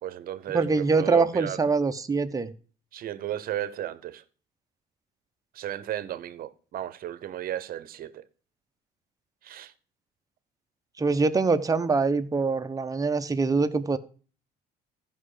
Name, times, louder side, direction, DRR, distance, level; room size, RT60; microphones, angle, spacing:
voice 1, 0.0-1.6 2.9-4.2 5.5-8.3 9.4-9.7, right 12 dB, 60° right, 0.9 m, -34 dB
voice 2, 0.5-2.5 11.0-14.0, right 4 dB, 20° right, 0.9 m, -24 dB
14.0 x 5.6 x 5.0 m
cardioid pair, 110°, 17 cm